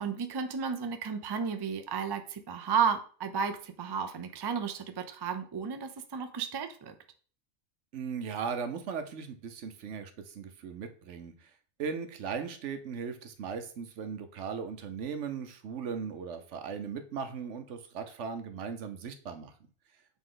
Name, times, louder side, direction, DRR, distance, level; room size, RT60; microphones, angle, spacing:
voice 1, 0.0-6.9, right 6 dB, 40° right, 7 dB, 0.3 m, -33 dB
voice 2, 7.9-11.5 11.8-19.5, right 6 dB, 85° right, 8 dB, 1.1 m, -38 dB
7.1 x 3.5 x 3.8 m, 0.44 s
omnidirectional pair, 1.2 m